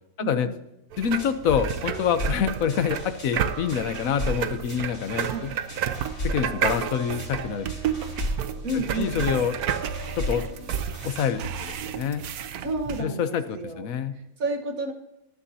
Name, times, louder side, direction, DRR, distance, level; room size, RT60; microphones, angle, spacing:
voice 1, 0.2-0.6 5.3-5.5 8.6-9.2 12.6-13.8 14.1-14.9, right 2 dB, 65° right, 5 dB, 1.8 m, -31 dB
sound 1, 0.9-13.0, right 8 dB, 80° right, 1.2 m, -31 dB
voice 2, 1.0-5.5 6.2-7.7 8.7-9.5 10.2-10.4 11.0-12.2 13.0-14.1, left 8 dB, 70° left, 10 dB, 1.2 m, -26 dB
sound 2, 1.1-11.7, equal, 45° left, 5.8 m, -37 dB
18.0 x 10.5 x 2.8 m, 0.87 s
omnidirectional pair, 1.6 m